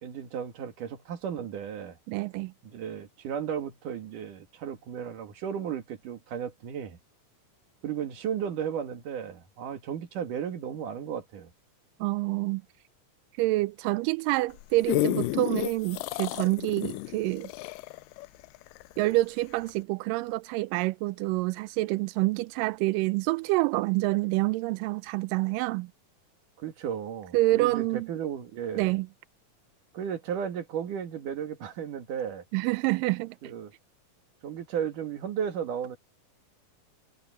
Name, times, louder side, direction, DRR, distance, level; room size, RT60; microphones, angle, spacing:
voice 1, 0.0-2.0 2.7-7.0 7.8-11.5 26.6-29.0 29.9-32.4 33.4-33.7 34.4-36.0, right 8 dB, 70° right, 3.5 m, -34 dB
voice 2, 2.1-2.5 12.0-12.6 13.4-17.5 19.0-25.9 27.3-28.1 28.8-29.1 32.5-33.5, right 20 dB, 90° right, 2.3 m, -27 dB
sound 1, 14.5-19.2 19.7-19.8, left 19 dB, 85° left, 2.2 m, -31 dB
omnidirectional pair, 3.8 m